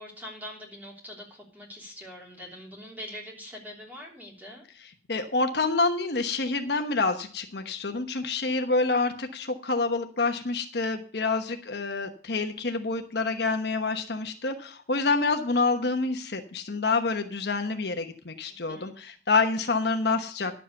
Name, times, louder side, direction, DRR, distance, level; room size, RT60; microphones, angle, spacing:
voice 1, 0.0-4.6 18.5-18.9, left 1 dB, 10° right, -2 dB, 3.3 m, -43 dB
voice 2, 5.1-20.6, left 3 dB, 60° left, 6 dB, 1.1 m, -27 dB
11.5 x 7.5 x 6.6 m, 0.43 s
head